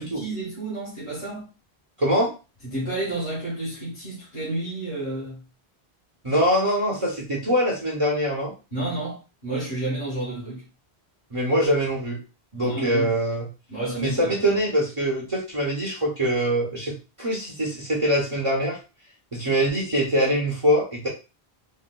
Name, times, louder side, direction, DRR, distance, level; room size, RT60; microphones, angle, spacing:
voice 1, 0.0-1.5 2.6-5.4 8.7-10.6 12.6-13.1 13.7-14.6, right 2 dB, 40° left, 1.3 m, -31 dB
voice 2, 2.0-2.3 6.2-8.5 11.3-12.2 12.5-13.5 14.0-18.8 19.3-21.1, equal, 35° right, 0.8 m, -23 dB
3.9 x 2.4 x 2.2 m
omnidirectional pair, 1.1 m